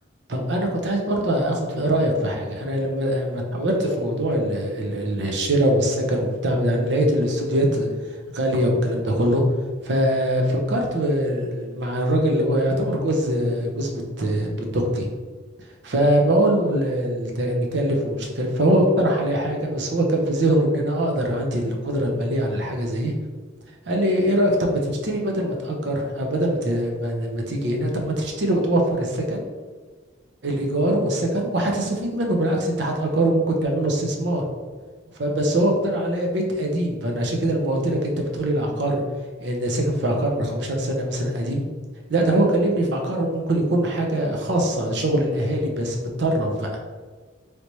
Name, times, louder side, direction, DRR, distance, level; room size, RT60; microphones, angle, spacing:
voice 1, 0.3-9.4 9.8-15.1 15.8-23.1 23.9-29.4 30.4-34.5 35.2-39.0 39.4-41.6 42.1-46.8, right 1 dB, 60° right, 1 dB, 0.6 m, -23 dB
3.2 x 2.8 x 3.0 m, 1.4 s
head